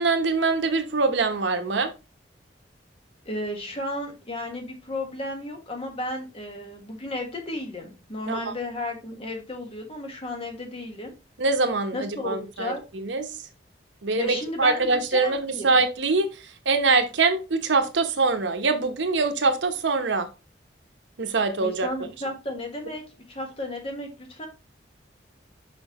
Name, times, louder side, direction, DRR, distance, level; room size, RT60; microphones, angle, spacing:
voice 1, 0.0-1.9 8.3-8.5 11.4-13.4 14.0-20.3 21.2-21.9, right 3 dB, 85° right, 7 dB, 0.9 m, -24 dB
voice 2, 3.2-11.1 11.9-12.8 14.1-15.8 21.5-23.0 23.3-24.5, left 1 dB, 30° left, 3 dB, 1.4 m, -33 dB
6.1 x 5.3 x 3.0 m, 0.28 s
head